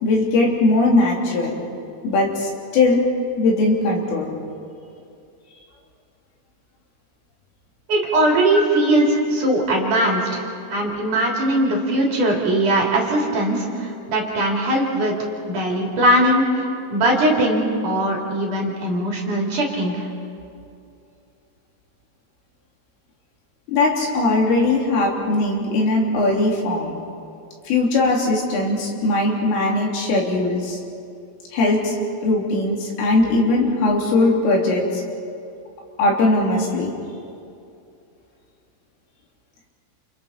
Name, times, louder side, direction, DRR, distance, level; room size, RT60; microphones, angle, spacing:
voice 1, 0.0-1.6 2.0-3.0 3.4-4.3 8.5-8.6 23.7-27.0 27.7-30.8 31.5-32.0 32.2-35.0 36.0-36.9, left 2 dB, 80° left, -2 dB, 5.7 m, -19 dB
voice 2, 7.9-10.4 10.7-15.2 15.5-20.1, right 1 dB, 45° right, -2 dB, 4.3 m, -20 dB
29.5 x 29.0 x 4.4 m, 2.5 s
omnidirectional pair, 5.7 m